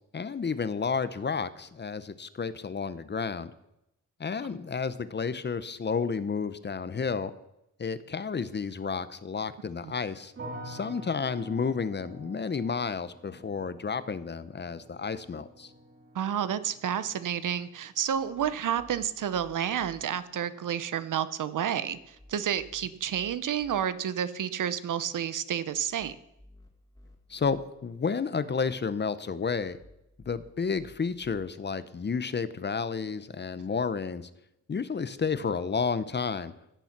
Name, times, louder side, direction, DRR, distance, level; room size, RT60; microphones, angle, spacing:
voice 1, 0.1-3.5 4.2-7.3 7.8-10.3 10.6-15.7 27.3-29.8 30.3-34.3 34.7-36.5, left 5 dB, 35° left, 14 dB, 0.7 m, -31 dB
sound 1, 10.4-21.4 21.7-22.4, right 1 dB, 45° right, 5.7 m, -49 dB
voice 2, 16.1-26.1, right 9 dB, 75° right, 14 dB, 0.8 m, -30 dB
sound 2, 18.1-20.0 21.9-23.8 25.7-27.6 29.5-31.5, left 1 dB, 10° left, 2.3 m, -56 dB
16.0 x 6.9 x 5.9 m, 0.84 s
wide cardioid pair, 105°, 32 cm